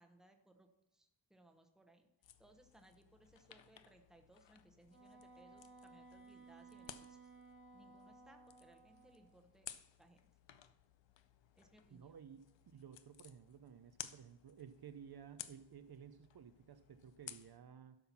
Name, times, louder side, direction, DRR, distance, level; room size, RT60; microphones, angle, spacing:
voice 1, 0.0-2.1 2.4-7.3 7.7-9.7 10.0-10.3 11.6-12.2, right 1 dB, ahead, 4 dB, 0.8 m, -66 dB
sound 1, 2.2-17.6, left 10 dB, 75° left, 0.6 m, -57 dB
Wind instrument woodwind instrument, 4.9-9.4, right 3 dB, 25° right, 1.1 m, -59 dB
voice 2, 11.9-18.0, right 8 dB, 55° right, 10 dB, 0.5 m, -55 dB
12.0 x 5.7 x 5.9 m, 0.91 s
wide cardioid pair, 175°, 45 cm